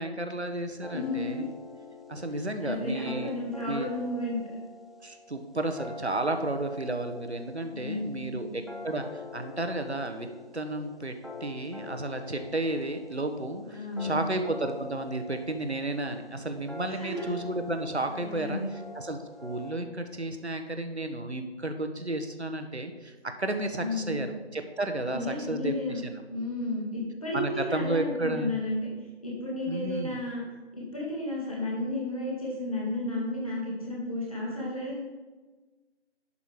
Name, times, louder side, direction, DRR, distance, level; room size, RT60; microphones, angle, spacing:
voice 1, 0.0-1.4 2.1-3.3 3.7-3.9 5.0-10.3 10.5-11.1 11.4-18.6 18.9-26.1 27.3-28.6 29.7-30.2, right 2 dB, 70° right, 6 dB, 1.3 m, -32 dB
sound 1, 0.8-19.7, left 3 dB, ahead, 0.5 m, -45 dB
voice 2, 0.9-1.4 2.6-4.5 7.7-8.5 13.6-14.3 16.9-17.3 18.1-18.7 23.8-24.2 25.1-26.0 26.3-28.9 29.2-30.4 30.7-35.0, left 2 dB, 30° left, -5 dB, 2.3 m, -33 dB
11.0 x 5.6 x 4.9 m, 1.3 s
figure-of-eight pair, 170°, 34 cm